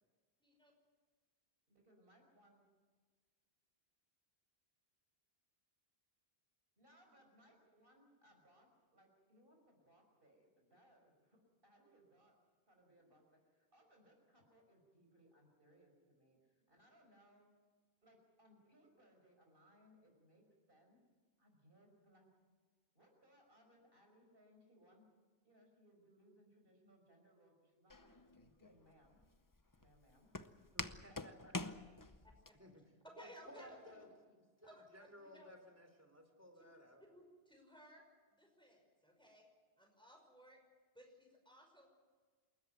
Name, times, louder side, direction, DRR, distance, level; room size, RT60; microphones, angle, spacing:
voice 1, 0.4-0.7 32.2-32.6 33.0-34.1 34.6-35.5 36.6-38.0 38.3-39.5 39.8-40.6 40.9-41.9, equal, 5° left, 1 dB, 5.6 m, -60 dB
voice 2, 1.7-2.7 6.8-12.3 12.7-17.5 18.0-21.0 21.4-22.3 22.9-25.0 25.4-29.2 29.8-30.3 31.1-31.4 31.7-32.0 33.5-34.4, equal, 60° right, 2 dB, 5.8 m, -69 dB
Walk footsteps, 27.9-32.5, left 2 dB, 20° left, 0.8 m, -47 dB
voice 3, 30.7-31.7 32.5-32.8 33.2-34.0 34.6-37.0, equal, 15° right, 6 dB, 3.4 m, -58 dB
28.5 x 14.0 x 9.3 m, 1.5 s
omnidirectional pair, 1.1 m